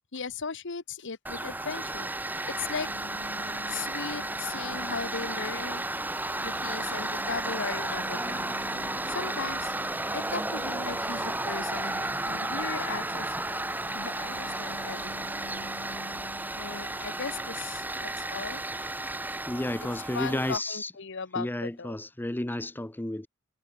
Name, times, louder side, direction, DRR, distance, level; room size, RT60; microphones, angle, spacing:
voice 1, 0.1-2.1 2.6-2.9 3.7-5.8 6.4-8.6 9.1-9.7 10.1-13.5 13.9-15.4 16.5-18.6 20.1-22.0, left 5 dB, 60° left, 1.2 m, -37 dB
Tools, 1.3-20.6, right 1 dB, 10° right, 2.6 m, -33 dB
sound 1, 2.4-18.5, left 1 dB, 80° left, 3.6 m, -48 dB
voice 2, 19.5-20.9 21.4-23.3, left 1 dB, 10° left, 0.6 m, -32 dB
head